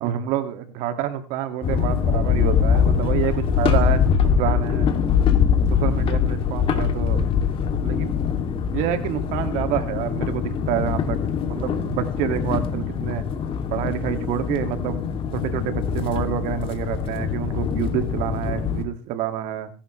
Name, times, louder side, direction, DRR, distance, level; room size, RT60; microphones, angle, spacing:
voice 1, 0.0-4.9 5.7-7.2 7.8-8.1 8.7-11.2 11.5-13.2 13.7-15.1 15.3-19.7, right 10 dB, 65° right, 8 dB, 2.2 m, -27 dB
sound 1, 1.6-18.8, left 7 dB, 45° left, 2.7 m, -23 dB
26.0 x 11.5 x 3.2 m, 0.34 s
supercardioid pair, 105°, 13 cm